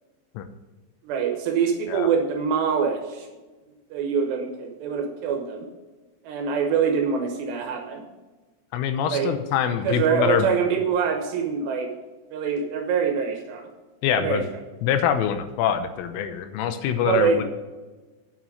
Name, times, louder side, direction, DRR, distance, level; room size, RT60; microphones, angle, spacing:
voice 1, 1.0-3.3 3.9-5.7 6.2-8.0 9.1-9.3 9.8-11.9 12.3-13.7 14.1-14.4 17.0-17.4, right 6 dB, 70° right, 4 dB, 2.8 m, -24 dB
voice 2, 8.7-10.5 14.0-14.4 14.8-17.4, left 9 dB, 85° left, 9 dB, 3.4 m, -24 dB
9.3 x 7.6 x 5.3 m, 1.2 s
omnidirectional pair, 5.8 m